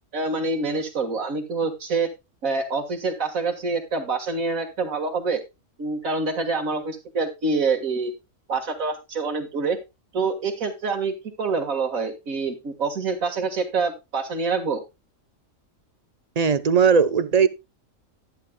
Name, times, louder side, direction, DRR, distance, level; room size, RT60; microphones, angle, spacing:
voice 1, 0.1-2.1 2.4-5.4 5.8-8.1 8.5-9.8 10.1-14.8, right 4 dB, 80° right, 2.0 m, -26 dB
voice 2, 16.4-17.5, right 6 dB, 40° right, 0.6 m, -18 dB
11.5 x 10.5 x 2.2 m
omnidirectional pair, 1.4 m